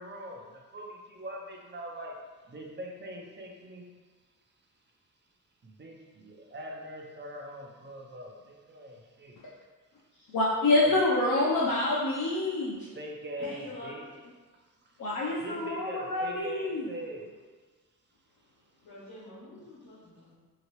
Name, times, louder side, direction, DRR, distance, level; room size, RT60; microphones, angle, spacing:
voice 1, 0.0-2.2 2.5-3.9 5.6-9.4 10.8-10.9 12.9-14.1 14.8-15.0 15.4-17.4 19.6-19.9, right 1 dB, 30° right, 0 dB, 0.5 m, -42 dB
voice 2, 10.3-12.8 15.0-16.9, left 2 dB, 60° left, -6 dB, 0.6 m, -26 dB
voice 3, 13.4-14.3 18.8-20.3, left 1 dB, 85° left, -9 dB, 1.1 m, -45 dB
2.9 x 2.9 x 3.0 m, 1.4 s
cardioid pair, 90°, 36 cm